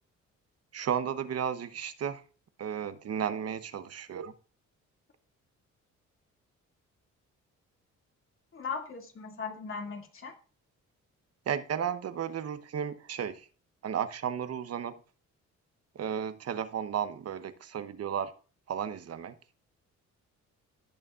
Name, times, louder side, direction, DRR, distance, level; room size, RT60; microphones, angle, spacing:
voice 1, 0.7-2.2 2.6-4.3 11.5-13.5 13.8-15.0 15.9-18.3 18.7-19.3, right 8 dB, 55° right, 1.0 m, -33 dB
voice 2, 8.5-10.3, left 5 dB, 45° left, 2.4 m, -38 dB
18.0 x 6.4 x 2.5 m
cardioid pair, 90°, 30 cm